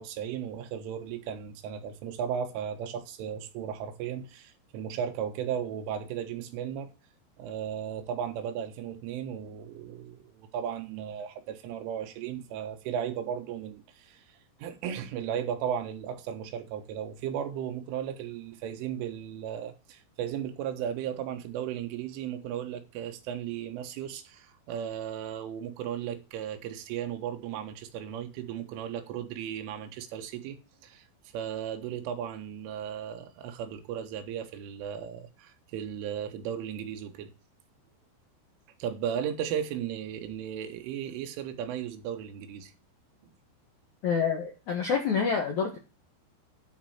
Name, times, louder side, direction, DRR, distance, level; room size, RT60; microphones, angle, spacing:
voice 1, 0.0-6.9 7.4-30.6 30.8-31.1 31.3-37.3 38.8-42.7 43.2-43.3, right 9 dB, 80° right, 3.7 m, -35 dB
voice 2, 44.0-45.8, left 6 dB, 65° left, 1.8 m, -27 dB
10.0 x 4.4 x 7.7 m
omnidirectional pair, 5.7 m